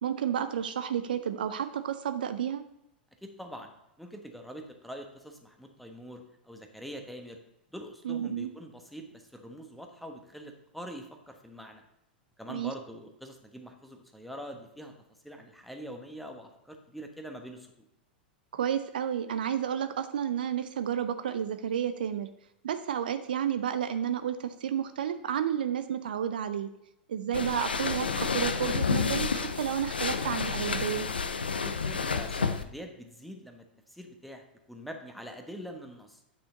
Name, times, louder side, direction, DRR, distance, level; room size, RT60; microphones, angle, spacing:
voice 1, 0.0-2.6 8.0-8.5 12.5-12.7 18.5-22.3 22.6-26.7 27.1-31.1, right 9 dB, 65° right, 11 dB, 0.5 m, -31 dB
voice 2, 3.2-3.7 4.0-7.4 7.7-11.8 12.4-14.9 15.2-17.7 31.6-36.2, equal, ahead, 4 dB, 1.1 m, -44 dB
sound 1, 27.3-32.6, left 5 dB, 80° left, 0.5 m, -30 dB
9.4 x 5.7 x 3.9 m, 0.85 s
figure-of-eight pair, 95°, 5 cm